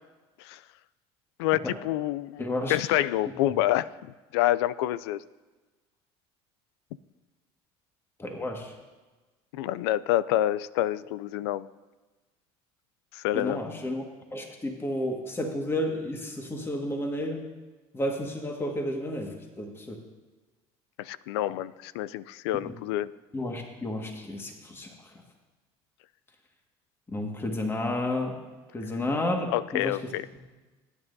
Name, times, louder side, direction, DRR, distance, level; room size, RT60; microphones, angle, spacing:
voice 1, 1.4-2.4 2.7-3.9 4.3-5.2 9.5-11.7 13.1-13.6 21.0-23.1 29.5-30.3, left 14 dB, 90° left, 18 dB, 0.4 m, -27 dB
voice 2, 2.4-2.8 8.2-8.7 13.3-14.0 14.3-17.4 17.9-20.0 22.7-22.8 23.3-24.9 27.1-28.3 28.7-30.0, left 1 dB, 20° left, 2 dB, 1.8 m, -31 dB
21.0 x 9.8 x 2.7 m, 1.2 s
supercardioid pair, 90°, 13 cm